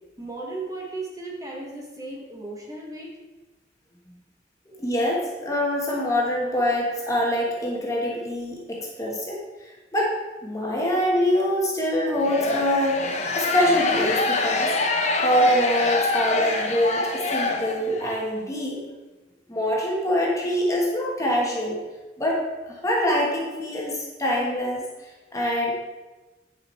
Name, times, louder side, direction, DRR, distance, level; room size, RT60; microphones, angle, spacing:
voice 1, 0.2-3.1, right 2 dB, 20° right, -2 dB, 1.5 m, -35 dB
voice 2, 4.7-14.8 15.2-18.8 19.5-21.8 22.2-25.7, equal, 20° left, -3 dB, 1.3 m, -25 dB
sound 1, 12.2-18.1, left 2 dB, 40° left, 0.9 m, -25 dB
9.7 x 5.2 x 4.4 m, 1.2 s
head